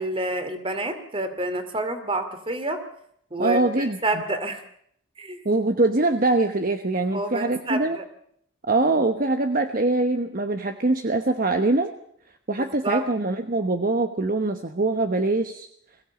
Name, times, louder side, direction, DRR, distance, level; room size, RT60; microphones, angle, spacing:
voice 1, 0.0-2.8 3.3-4.6 5.2-5.4 7.1-8.0 12.6-13.0, right 1 dB, 30° right, 9 dB, 2.6 m, -28 dB
voice 2, 3.4-4.0 5.4-8.0 8.7-11.9 12.5-15.7, right 2 dB, 45° right, 7 dB, 1.1 m, -23 dB
22.0 x 16.0 x 8.4 m, 0.69 s
head